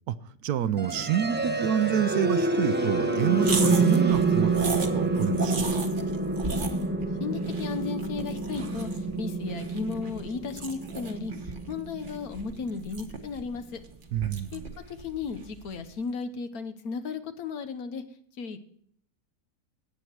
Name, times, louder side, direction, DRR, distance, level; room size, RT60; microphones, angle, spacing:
voice 1, 0.4-4.5 4.8-5.8 14.1-14.8, right 9 dB, 75° right, 14 dB, 1.1 m, -28 dB
sound 1, 0.7-12.6, right 3 dB, 10° right, 0.5 m, -27 dB
sound 2, 3.4-15.9, right 4 dB, 35° right, 1.1 m, -38 dB
voice 2, 6.5-11.3 11.7-13.8 14.5-14.6 14.9-18.0 18.4-18.6, left 5 dB, 70° left, 10 dB, 1.4 m, -35 dB
17.5 x 6.7 x 4.6 m, 0.63 s
omnidirectional pair, 1.6 m